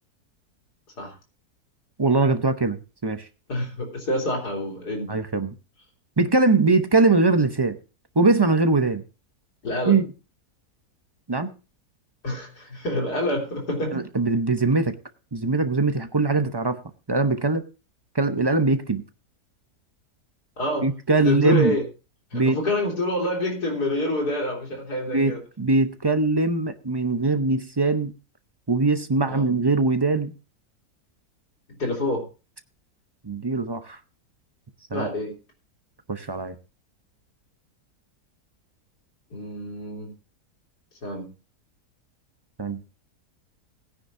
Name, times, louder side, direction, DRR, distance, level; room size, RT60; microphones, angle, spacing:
voice 1, 2.0-3.3 5.1-5.5 6.2-7.8 8.2-9.0 9.9-10.1 11.3-11.5 13.9-14.9 15.3-16.8 17.1-17.6 18.1-19.0 20.8-21.8 22.3-22.6 25.1-28.1 28.7-30.3 33.2-34.0 34.9-35.1 36.1-36.6 42.6-42.8, right 3 dB, 30° right, 8 dB, 0.5 m, -21 dB
voice 2, 3.5-5.1 9.6-10.0 12.2-14.0 20.6-20.9 21.2-21.8 22.3-25.4 29.3-29.5 31.8-32.2 34.9-35.3 39.3-40.1 41.0-41.3, left 1 dB, 80° left, 1 dB, 3.9 m, -27 dB
18.0 x 9.9 x 2.6 m, 0.31 s
omnidirectional pair, 1.7 m